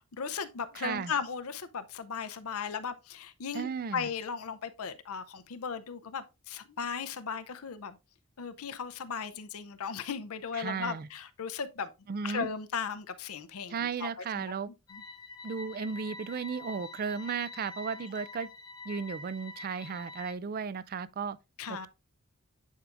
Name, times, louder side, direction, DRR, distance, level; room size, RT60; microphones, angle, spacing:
voice 1, 0.2-7.9 8.4-11.9 12.2-13.7 14.0-14.1 14.4-14.6 14.9-15.0 21.6-21.9, left 6 dB, 70° left, 0.6 m, -36 dB
voice 2, 0.7-1.1 3.5-4.1 10.5-11.1 12.1-12.5 13.7-14.7 15.4-18.5 18.8-21.4 21.7-21.9, right 6 dB, 40° right, 0.4 m, -35 dB
sound 1, 14.9-20.3, left 3 dB, 20° left, 0.5 m, -46 dB
10.0 x 4.8 x 2.5 m
head